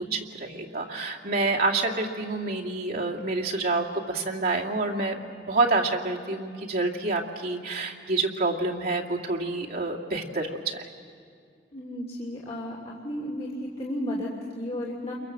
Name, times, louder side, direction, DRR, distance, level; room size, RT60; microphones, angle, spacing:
voice 1, 0.1-5.2 5.5-10.8, right 3 dB, 55° right, -1 dB, 2.5 m, -28 dB
voice 2, 11.7-15.1, left 1 dB, 35° left, -4 dB, 2.9 m, -33 dB
29.0 x 23.0 x 7.7 m, 2.3 s
head